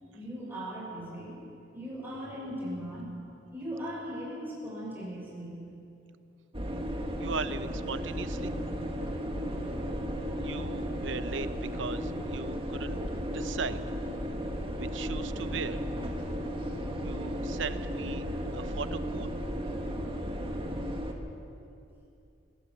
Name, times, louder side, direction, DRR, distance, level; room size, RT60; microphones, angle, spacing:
voice 1, 0.1-1.3 1.7-3.2 3.5-5.6, equal, 10° right, -6 dB, 6.5 m, -38 dB
sound 1, 6.5-21.1, equal, 30° right, 1.9 m, -34 dB
voice 2, 7.2-8.5 10.4-13.0 13.3-13.8 14.8-15.8 17.0-18.2 18.5-19.3, right 5 dB, 70° right, 12 dB, 0.8 m, -38 dB
24.0 x 17.0 x 7.3 m, 2.7 s
head